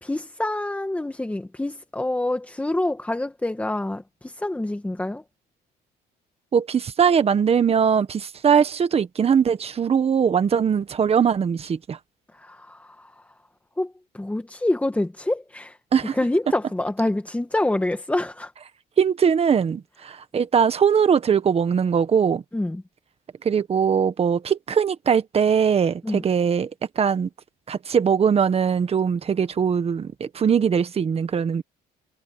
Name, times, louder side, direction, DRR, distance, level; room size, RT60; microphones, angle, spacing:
voice 1, 0.0-5.2 12.4-13.1 13.8-15.8 16.2-18.5 22.5-22.8 26.0-26.2, left 1 dB, 10° left, 1.8 m, -26 dB
voice 2, 6.5-12.0 15.9-16.2 19.0-22.4 23.4-26.7 26.9-27.3 27.7-31.6, right 7 dB, 35° right, 1.6 m, -21 dB
cardioid pair, 110°, 17 cm